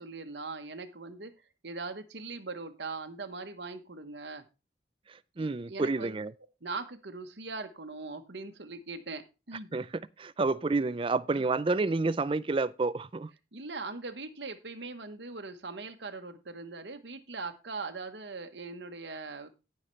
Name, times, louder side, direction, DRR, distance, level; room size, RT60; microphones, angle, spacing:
voice 1, 0.0-1.3 1.6-4.4 5.4-6.2 6.6-9.7 11.3-11.5 13.5-19.5, right 3 dB, 70° right, 1.2 m, -41 dB
voice 2, 5.4-6.3 9.7-9.9 10.2-13.3, right 3 dB, 30° right, 0.4 m, -29 dB
17.0 x 5.7 x 3.2 m
head